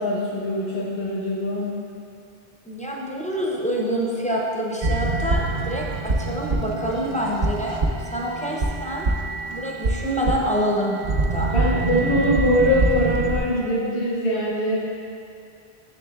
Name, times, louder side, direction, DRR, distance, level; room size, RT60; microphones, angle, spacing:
voice 1, 0.0-1.7 11.5-14.8, left 1 dB, 85° left, -8 dB, 1.1 m, -22 dB
voice 2, 2.6-9.1 9.5-11.5, equal, 10° left, -3 dB, 0.4 m, -26 dB
sound 1, 4.8-13.4, right 3 dB, 55° right, 0.5 m, -25 dB
7.1 x 6.6 x 2.3 m, 2.4 s
omnidirectional pair, 1.0 m